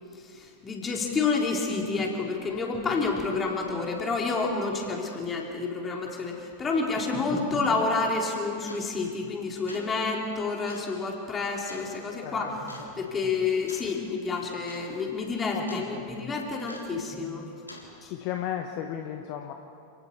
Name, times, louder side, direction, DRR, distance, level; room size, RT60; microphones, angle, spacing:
voice 1, 0.2-17.5 18.0-18.1, left 4 dB, 20° left, 0 dB, 3.9 m, -29 dB
sound 1, 8.7-9.0 9.5-10.0 10.7-10.9 11.7-11.9 12.7-12.9 13.7-13.9 14.2-14.3 14.6-14.9 15.1-15.9 16.7-17.0 17.7-17.9, left 2 dB, 85° left, 3.5 m, -46 dB
voice 2, 15.5-15.9 18.1-19.5, left 10 dB, 45° left, 4 dB, 1.3 m, -34 dB
29.5 x 18.5 x 4.8 m, 2.6 s
figure-of-eight pair, 90°, 0 cm